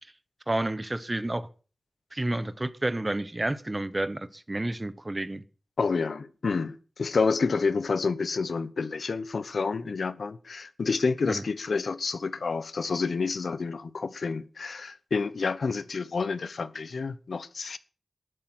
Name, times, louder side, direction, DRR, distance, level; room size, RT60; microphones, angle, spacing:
voice 1, 0.5-1.5 2.1-5.4 11.3-11.4, right 1 dB, 25° right, 1.0 m, -30 dB
voice 2, 5.8-17.8, left 4 dB, 75° left, 1.0 m, -29 dB
11.5 x 11.5 x 6.3 m
wide cardioid pair, 100°, 0 cm